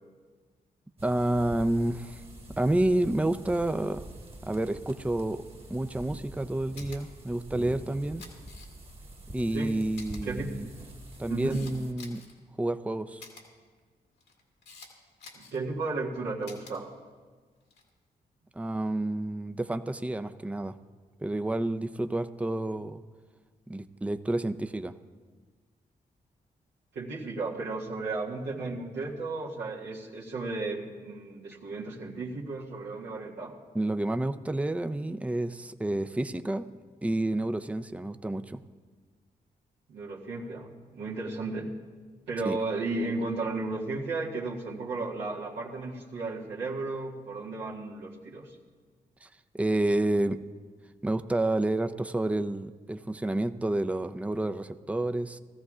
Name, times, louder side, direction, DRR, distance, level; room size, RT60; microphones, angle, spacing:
voice 1, 1.0-2.2 2.6-4.0 4.5-5.4 5.7-8.2 9.3-10.7 11.2-12.2 12.6-13.2 18.5-20.8 21.2-23.0 23.7-24.9 33.7-36.7 37.0-38.6 42.4-42.6 49.2-49.3 49.5-50.4 51.0-55.4, right 1 dB, 5° right, 9 dB, 0.5 m, -29 dB
sound 1, 1.0-11.9, right 1 dB, 30° right, 1.5 m, -45 dB
Camera, 6.8-7.0 8.0-8.9 9.4-9.5 10.0-10.2 10.9-12.3 13.2-13.4 14.2-14.9 15.2-15.6 16.4-16.7 17.6-17.9, left 4 dB, 85° left, 2.0 m, -48 dB
voice 2, 11.3-11.6 15.3-16.9 26.9-33.5 39.9-41.7 42.3-48.6, right 3 dB, 85° right, -5 dB, 1.7 m, -34 dB
17.0 x 14.0 x 2.5 m, 1.5 s
supercardioid pair, 45°, 18 cm